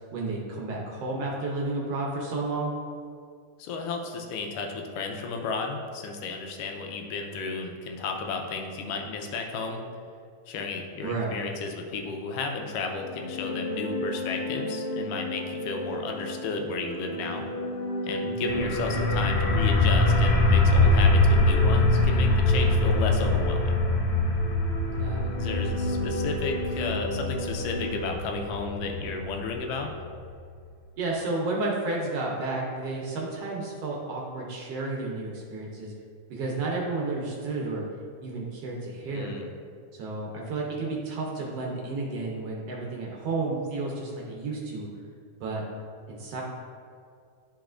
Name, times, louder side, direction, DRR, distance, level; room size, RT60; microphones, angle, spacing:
voice 1, 0.1-2.7 11.0-11.3 18.2-18.6 24.9-25.4 31.0-35.9 36.3-37.8 38.2-39.4 39.9-44.9 45.4-45.6 46.1-46.4, right 3 dB, 70° right, -2 dB, 1.5 m, -32 dB
voice 2, 3.6-9.8 10.5-17.4 18.0-23.8 25.4-29.9 39.1-39.5, left 4 dB, 85° left, 3 dB, 2.3 m, -33 dB
sound 1, 13.0-28.7, left 1 dB, 50° left, 2.2 m, -34 dB
sound 2, 18.5-30.0, left 2 dB, 65° left, 1.2 m, -23 dB
10.5 x 5.0 x 2.5 m, 2.3 s
omnidirectional pair, 3.7 m